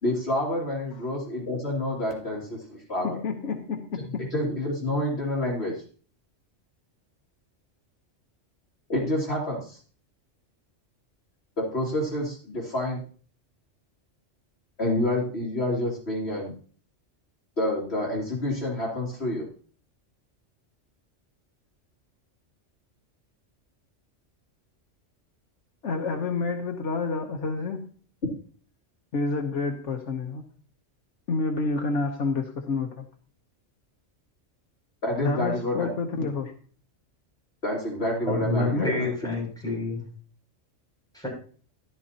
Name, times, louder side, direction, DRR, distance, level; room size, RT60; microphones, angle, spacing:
voice 1, 0.0-3.2 4.0-5.7 8.9-9.8 11.6-13.0 14.8-16.6 17.6-19.4 35.0-35.9 36.2-36.3 37.6-39.1, left 1 dB, 55° left, -4 dB, 3.0 m, -28 dB
voice 2, 3.1-4.3 25.8-27.9 29.1-30.4 31.3-33.1 35.2-36.5 38.7-38.9, left 3 dB, 75° left, 4 dB, 1.3 m, -29 dB
voice 3, 38.3-40.0 41.1-41.3, left 2 dB, 5° left, -4 dB, 6.7 m, -28 dB
13.0 x 12.5 x 2.9 m, 0.43 s
omnidirectional pair, 1.3 m